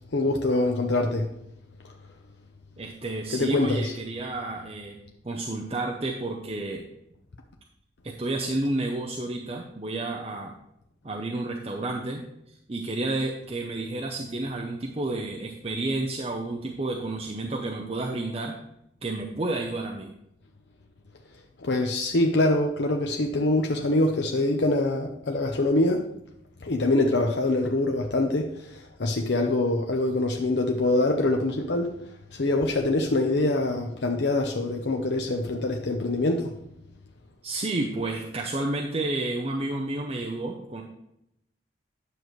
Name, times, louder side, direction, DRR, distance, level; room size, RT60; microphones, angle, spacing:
voice 1, 0.1-1.3 3.3-3.9 21.6-26.0 26.6-28.5 29.0-31.9 32.3-36.5, left 2 dB, 70° left, 2 dB, 0.7 m, -24 dB
voice 2, 2.8-5.0 5.2-6.9 8.0-10.5 11.0-18.5 19.0-20.1 37.4-40.8, right 2 dB, 30° right, 1 dB, 0.6 m, -30 dB
9.7 x 6.6 x 3.1 m, 0.79 s
head